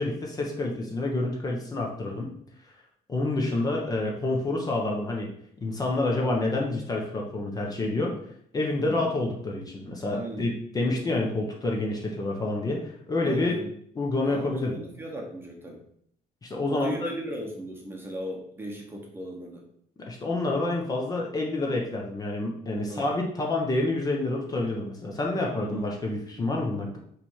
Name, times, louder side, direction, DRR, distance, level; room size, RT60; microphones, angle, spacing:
voice 1, 0.0-2.3 3.1-5.3 5.6-8.1 8.5-13.6 13.9-14.8 16.4-17.1 20.1-27.0, left 2 dB, 25° left, -1 dB, 1.0 m, -28 dB
voice 2, 8.8-9.1 10.1-10.4 13.2-13.7 14.2-15.8 16.7-19.6 22.9-23.1 25.6-25.9, right 1 dB, 15° right, 0 dB, 1.0 m, -37 dB
5.8 x 3.4 x 5.6 m, 0.66 s
cardioid pair, 175°, 16 cm